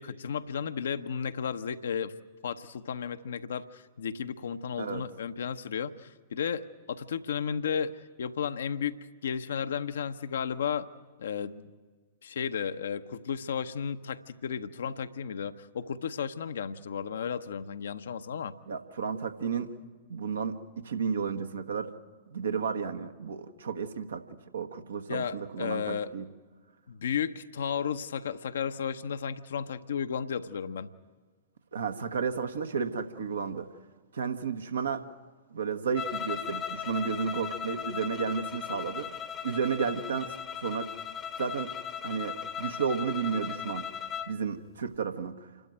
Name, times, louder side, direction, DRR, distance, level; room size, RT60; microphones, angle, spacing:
voice 1, 0.0-2.1 2.4-10.9 11.2-11.7 12.2-18.6 25.1-26.1 26.9-30.9, left 7 dB, 65° left, 10 dB, 0.8 m, -33 dB
voice 2, 18.7-19.7 20.1-21.9 22.3-24.2 24.5-26.2 31.7-33.7 34.1-35.1 35.5-39.2 39.4-40.3 40.6-40.9 41.4-41.7 42.0-43.9 44.3-45.5, right 6 dB, 70° right, 7 dB, 1.3 m, -32 dB
sound 1, 35.9-44.4, left 8 dB, 20° left, 0.9 m, -37 dB
28.0 x 12.5 x 9.1 m, 1.4 s
figure-of-eight pair, 105°, 0 cm